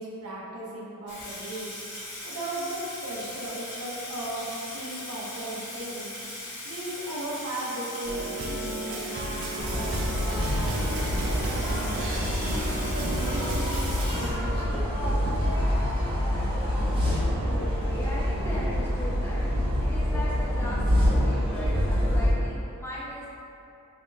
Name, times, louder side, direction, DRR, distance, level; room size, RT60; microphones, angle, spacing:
voice 1, 0.0-1.7 2.2-6.1 6.6-12.5 12.9-15.4, right 1 dB, 85° right, -5 dB, 0.8 m, -37 dB
Water tap faucet / Sink (filling or washing), 1.1-14.8, left 1 dB, 55° left, 1.2 m, -39 dB
sound 1, 8.1-14.1, right 2 dB, 65° right, 0.3 m, -34 dB
sound 2, 9.6-22.3, equal, 25° right, 0.8 m, -26 dB
voice 2, 17.2-23.3, equal, 10° left, -8 dB, 0.4 m, -39 dB
4.9 x 2.3 x 2.7 m, 2.8 s
head